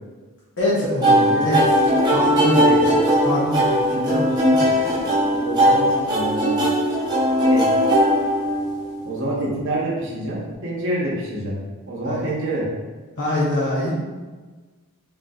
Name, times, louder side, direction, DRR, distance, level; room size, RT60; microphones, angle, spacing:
voice 1, 0.6-1.6 2.1-2.9 3.2-4.9 12.0-12.2 13.2-13.9, left 1 dB, 55° left, -8 dB, 0.8 m, -24 dB
sound 1, 1.0-9.0, equal, 20° right, 0.6 m, -19 dB
voice 2, 5.2-6.6 7.5-7.7 9.0-11.6 11.9-12.7, right 1 dB, 60° right, -5 dB, 0.7 m, -27 dB
3.7 x 2.6 x 2.3 m, 1.3 s
head